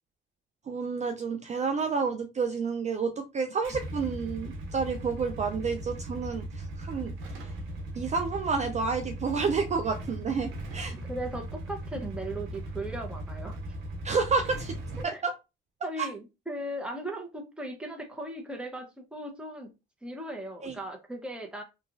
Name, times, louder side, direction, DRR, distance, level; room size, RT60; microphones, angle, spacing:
voice 1, 0.7-7.1 7.4-7.5 8.0-10.9 14.0-14.7 15.0-15.3 16.0-16.1 20.6-20.8, right 5 dB, 35° right, 6 dB, 0.4 m, -30 dB
Motorcycle / Engine starting / Idling, 3.6-15.0, right 1 dB, 85° right, 0.8 m, -38 dB
voice 2, 10.9-13.6 15.0-15.2 15.8-19.7 20.0-21.6, right 1 dB, 5° right, 2 dB, 0.8 m, -37 dB
2.9 x 2.3 x 2.4 m, 0.26 s
cardioid pair, 90°, 20 cm